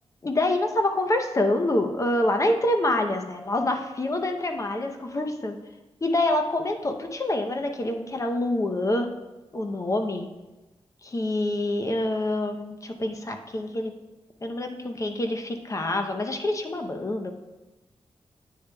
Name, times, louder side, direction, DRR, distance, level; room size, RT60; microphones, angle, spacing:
voice 1, 0.2-5.6 6.0-9.1 9.5-10.3 11.0-13.9 14.4-17.3, left 1 dB, 30° left, 5 dB, 0.7 m, -26 dB
9.9 x 8.3 x 2.3 m, 1.1 s
wide cardioid pair, 120°, 11 cm